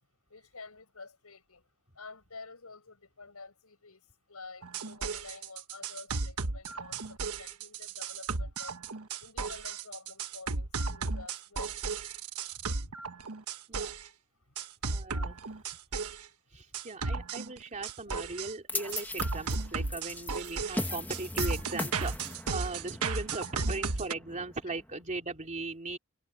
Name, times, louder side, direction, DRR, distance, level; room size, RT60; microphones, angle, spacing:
voice 1, 0.3-1.6 2.0-4.0 4.3-8.8 9.2-11.7 12.8-13.0 23.3-23.4, left 4 dB, 75° left, 7.3 m, -49 dB
sound 1, 4.6-14.1 14.6-16.3 16.7-18.5 18.9-24.1, right 4 dB, 80° right, 1.3 m, -34 dB
voice 2, 14.9-15.6 16.5-26.0, right 3 dB, 35° right, 3.0 m, -38 dB
sound 2, 18.7-25.0, left 2 dB, 10° left, 1.5 m, -39 dB
head